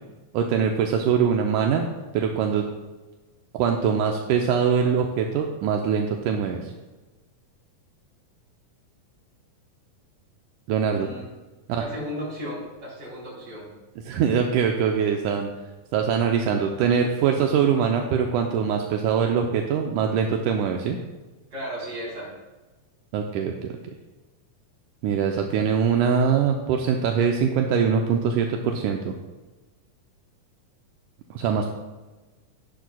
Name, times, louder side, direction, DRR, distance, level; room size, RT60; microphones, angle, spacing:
voice 1, 0.3-1.9 2.1-2.6 3.6-6.7 10.7-11.1 11.7-11.8 14.1-15.5 15.9-21.0 23.1-23.7 25.0-29.1 31.3-31.7, right 7 dB, 80° right, 2 dB, 2.0 m, -23 dB
voice 2, 10.9-11.3 11.8-13.7 21.5-22.3, equal, 30° right, -5 dB, 3.7 m, -35 dB
12.0 x 10.0 x 2.2 m, 1.2 s
omnidirectional pair, 3.8 m